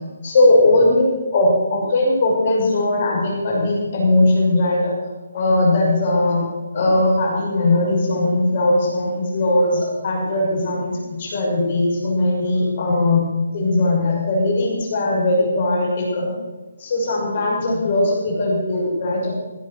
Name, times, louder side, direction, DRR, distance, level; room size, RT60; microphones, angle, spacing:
voice 1, 0.2-1.0 1.3-4.9 5.3-6.5 6.7-13.3 13.5-16.3 16.8-19.3, left 2 dB, 40° left, -3 dB, 6.1 m, -19 dB
16.0 x 9.2 x 6.6 m, 1.2 s
hypercardioid pair, 170°, 0 cm